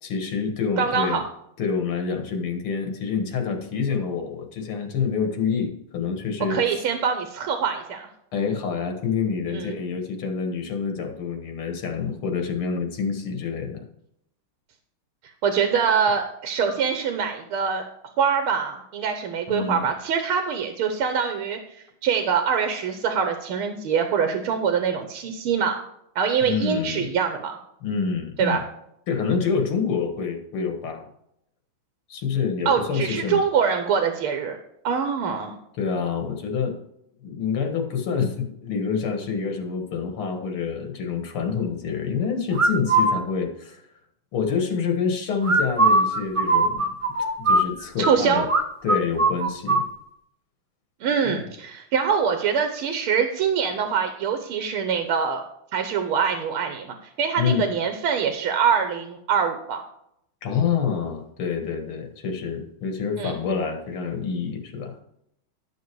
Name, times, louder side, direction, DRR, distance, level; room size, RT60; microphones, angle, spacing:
voice 1, 0.0-1.2 1.6-6.8 8.3-13.8 19.5-19.9 26.4-27.0 27.8-28.6 29.1-31.1 32.1-33.4 35.8-36.8 37.2-43.8 44.3-46.9 47.4-48.5 48.8-49.9 51.2-51.3 57.4-57.6 60.4-65.0, left 6 dB, 90° left, 4 dB, 2.4 m, -27 dB
voice 2, 0.8-1.2 6.5-8.1 9.5-9.8 15.4-17.9 18.2-25.8 26.2-27.6 28.4-28.6 32.7-34.6 34.8-35.6 48.0-48.5 51.0-55.4 55.7-59.8 63.2-63.3, right 6 dB, 85° right, 6 dB, 1.8 m, -24 dB
sound 1, 42.5-43.1 45.4-48.1 48.5-48.6 48.9-49.9, right 2 dB, 50° right, 0.3 m, -20 dB
11.5 x 6.6 x 4.6 m, 0.76 s
omnidirectional pair, 2.3 m